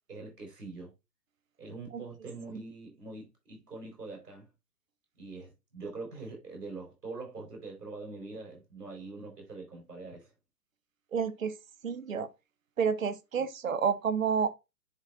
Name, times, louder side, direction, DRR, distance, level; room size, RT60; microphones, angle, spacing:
voice 1, 0.1-0.9 1.6-4.5 5.2-10.3 13.4-13.5, right 3 dB, 75° right, 4.3 m, -43 dB
voice 2, 11.1-11.6 11.8-12.3 12.8-14.5, right 6 dB, 55° right, 1.0 m, -29 dB
10.5 x 4.4 x 2.4 m
figure-of-eight pair, 140°, 48 cm